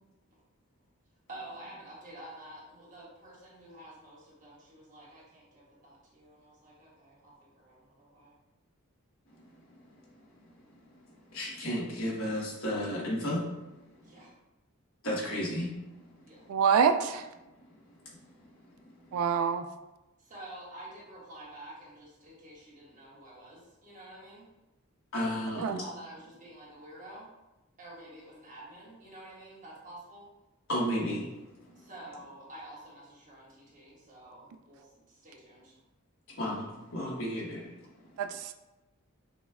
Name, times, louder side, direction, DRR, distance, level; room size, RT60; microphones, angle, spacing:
voice 1, 1.3-8.3 14.0-14.3 16.3-16.5 20.2-24.5 25.6-27.3 27.8-30.3 31.7-35.8, right 1 dB, 35° right, -6 dB, 1.4 m, -49 dB
voice 2, 10.3-13.7 14.2-14.3 15.0-16.4 17.5-18.6 18.9-19.2 25.1-25.8 30.7-31.8 36.3-38.1, equal, 65° left, -4 dB, 1.3 m, -35 dB
voice 3, 16.5-17.3 19.1-19.7 25.6-25.8 38.2-38.5, right 6 dB, 80° right, 10 dB, 0.3 m, -26 dB
6.1 x 2.3 x 3.4 m, 1.0 s
head